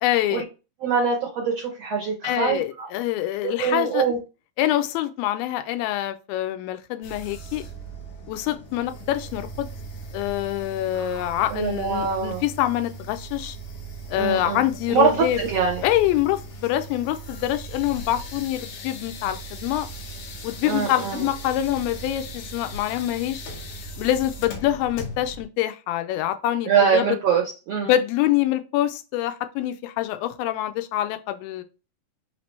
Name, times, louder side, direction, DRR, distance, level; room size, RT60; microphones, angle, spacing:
voice 1, 0.0-0.4 2.2-4.1 4.6-7.6 8.3-9.7 10.1-13.6 14.1-15.4 15.8-19.9 20.4-23.5 24.0-27.2 27.8-31.6, left 13 dB, 90° left, 2.4 m, -25 dB
voice 2, 0.8-2.9 3.4-4.2 10.9-12.4 14.1-15.8 20.6-21.3 26.7-27.9, right 6 dB, 85° right, 1.4 m, -24 dB
sound 1, 7.0-25.5, right 1 dB, 70° left, 2.1 m, -38 dB
5.8 x 2.9 x 3.1 m
omnidirectional pair, 4.2 m